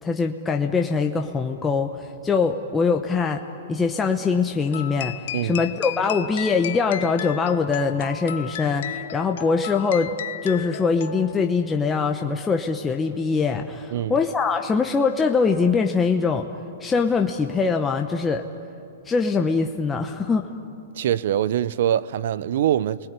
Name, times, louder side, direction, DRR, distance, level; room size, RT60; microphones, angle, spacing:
voice 1, 0.0-3.4 3.7-10.2 10.4-16.5 16.8-18.4 19.1-20.5, left 5 dB, 15° left, 3 dB, 0.9 m, -23 dB
sound 1, 4.7-11.6, left 11 dB, 65° left, 0.8 m, -34 dB
voice 2, 20.9-23.0, right 11 dB, 65° right, 18 dB, 0.7 m, -23 dB
30.0 x 20.5 x 9.6 m, 2.8 s
hypercardioid pair, 145°, 0 cm